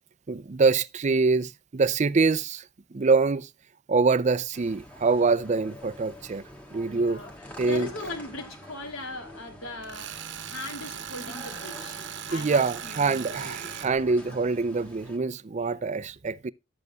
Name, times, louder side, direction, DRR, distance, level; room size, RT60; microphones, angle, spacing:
voice 1, 0.3-2.6 2.9-3.5 3.9-6.4 6.7-7.2 7.6-7.9 12.3-16.5, right 4 dB, 35° right, 0.4 m, -25 dB
sound 1, 4.5-15.2, left 1 dB, 5° left, 1.8 m, -46 dB
voice 2, 6.8-14.4 15.6-15.9, left 2 dB, 85° left, 2.7 m, -40 dB
Tools, 9.8-13.9, right 9 dB, 60° right, 1.0 m, -38 dB
12.0 x 8.1 x 2.2 m
head